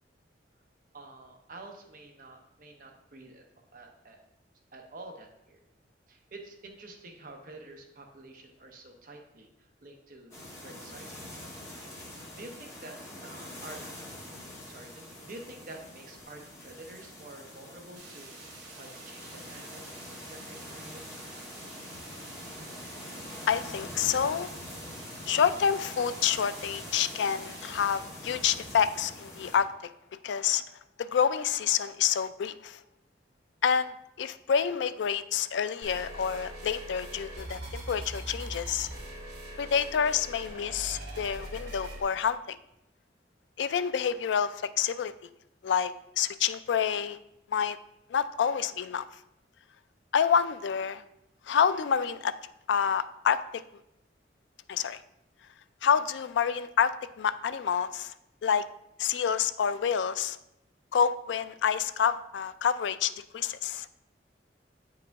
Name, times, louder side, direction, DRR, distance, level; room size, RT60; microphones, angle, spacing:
voice 1, 0.9-3.5 3.7-4.2 4.7-5.6 6.1-11.5 12.3-13.8 14.7-21.2, right 2 dB, 50° right, 2 dB, 0.8 m, -48 dB
sound 1, 10.3-29.6, left 1 dB, 15° left, 1.5 m, -44 dB
sound 2, 17.9-28.0, right 4 dB, 85° right, 2.0 m, -50 dB
voice 2, 23.5-24.5 25.3-29.9 30.2-30.6 31.0-32.8 33.6-38.9 39.6-42.6 43.6-45.1 45.6-47.2 47.5-47.8 48.1-49.1 50.1-51.0 51.4-52.3 52.7-53.6 54.7-55.0 55.8-58.1 58.4-58.7 59.0-60.4 60.9-63.9, left 7 dB, 80° left, 13 dB, 0.4 m, -28 dB
sound 3, 35.8-42.0, right 1 dB, 65° right, 2.2 m, -41 dB
8.8 x 4.8 x 3.5 m, 0.83 s
head